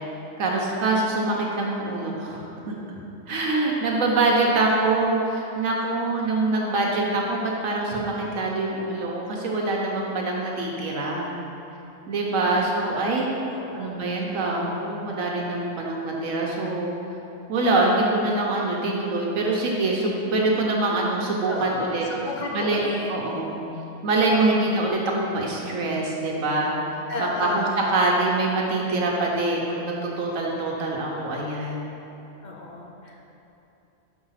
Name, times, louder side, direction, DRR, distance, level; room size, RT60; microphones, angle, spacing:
voice 1, 0.4-2.7 3.3-11.4 12.1-13.3 13.7-16.9 17.5-22.0 22.5-22.8 23.1-23.6 24.0-26.8 27.2-31.9, right 2 dB, 80° right, -2 dB, 1.3 m, -24 dB
voice 2, 4.1-4.6 12.3-12.7 13.5-14.0 21.5-23.1 24.3-24.7 27.1-27.8 32.4-33.2, left 2 dB, 40° left, -1 dB, 0.8 m, -34 dB
6.3 x 4.9 x 5.6 m, 3.0 s
omnidirectional pair, 1.4 m